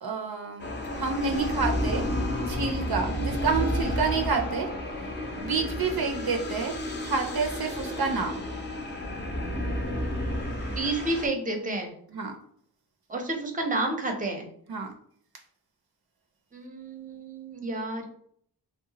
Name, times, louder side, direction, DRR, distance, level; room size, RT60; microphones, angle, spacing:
voice 1, 0.0-4.7 5.4-6.7 7.0-8.5 12.1-12.4 14.7-14.9, right 4 dB, 60° right, 3 dB, 0.5 m, -29 dB
sound 1, 0.6-11.3, left 1 dB, 25° left, 0.5 m, -31 dB
voice 2, 10.7-11.9 13.1-14.5 16.5-18.1, right 2 dB, 20° right, 3 dB, 0.6 m, -30 dB
2.8 x 2.1 x 2.8 m, 0.63 s
cardioid pair, 55°, 42 cm